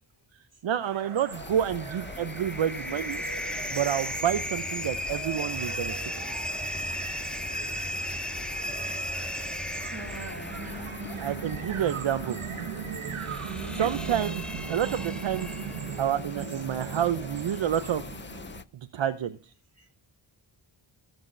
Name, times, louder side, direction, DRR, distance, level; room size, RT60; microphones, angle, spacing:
voice 1, 0.6-3.2 3.7-6.3 11.2-12.4 13.8-15.5 16.0-18.0 18.9-19.4, right 10 dB, 65° right, 10 dB, 0.7 m, -29 dB
sound 1, 0.8-18.6, right 8 dB, 80° right, 1.1 m, -39 dB
sound 2, 1.3-18.6, left 6 dB, 25° left, 0.4 m, -43 dB
sound 3, 1.6-16.1, equal, ahead, 0.8 m, -36 dB
voice 2, 9.9-11.1 13.6-13.9, right 3 dB, 30° right, 1 dB, 2.5 m, -43 dB
17.5 x 7.9 x 2.6 m, 0.39 s
wide cardioid pair, 120°, 49 cm